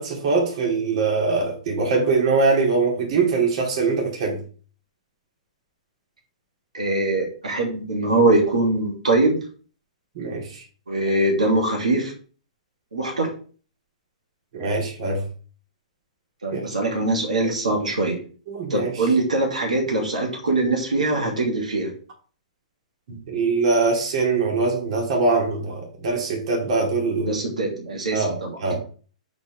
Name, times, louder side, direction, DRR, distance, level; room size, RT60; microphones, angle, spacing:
voice 1, 0.0-4.4 10.1-10.6 14.5-15.2 16.5-16.8 18.5-19.1 23.1-27.3 28.1-28.7, right 4 dB, 55° right, 0 dB, 2.7 m, -23 dB
voice 2, 6.7-9.4 10.9-12.1 12.9-13.3 16.4-18.2 18.7-21.9 27.3-28.7, right 2 dB, 80° right, -1 dB, 2.6 m, -22 dB
7.9 x 4.4 x 3.5 m, 0.40 s
hypercardioid pair, 115°, 4 cm